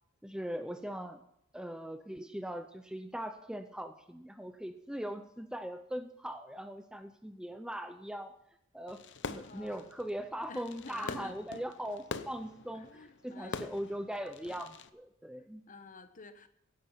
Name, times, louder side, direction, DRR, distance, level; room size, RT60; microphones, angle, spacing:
voice 1, 0.2-1.2 1.5-8.3 8.7-15.7, equal, 5° right, 8 dB, 0.6 m, -40 dB
Fireworks, 8.9-14.9, left 4 dB, 55° left, 0.8 m, -44 dB
voice 2, 9.4-9.9 10.5-11.4 12.7-13.7 15.7-16.5, left 3 dB, 40° left, 10 dB, 1.2 m, -50 dB
17.0 x 10.0 x 5.7 m, 0.79 s
head